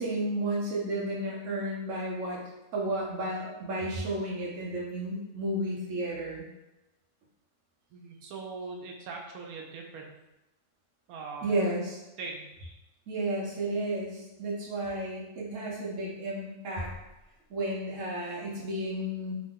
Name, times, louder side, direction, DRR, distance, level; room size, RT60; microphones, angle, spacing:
voice 1, 0.0-2.4 2.7-6.5 11.4-12.0 13.1-16.9 17.5-19.3, right 1 dB, 65° right, -3 dB, 1.0 m, -32 dB
voice 2, 7.9-10.2 11.1-11.5 12.2-12.5, right 4 dB, 90° right, 1 dB, 1.1 m, -41 dB
2.8 x 2.1 x 3.5 m, 0.97 s
omnidirectional pair, 1.5 m